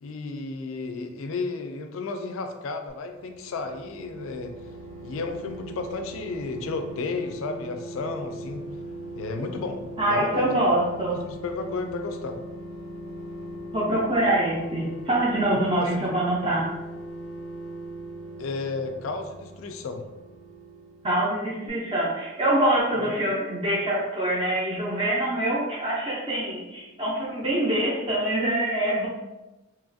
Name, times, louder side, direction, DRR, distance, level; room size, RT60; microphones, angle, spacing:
voice 1, 0.0-4.5 5.0-8.6 9.1-9.8 10.1-10.6 11.0-12.4 15.5-16.2 16.4-16.5 18.4-20.0, left 3 dB, 70° left, 6 dB, 0.3 m, -33 dB
sound 1, 3.1-21.4 21.7-21.8, right 1 dB, 85° right, 0.6 m, -40 dB
voice 2, 10.0-11.2 13.7-16.6 21.0-29.1, right 1 dB, 25° right, -7 dB, 0.4 m, -25 dB
2.9 x 2.4 x 2.5 m, 1.1 s
head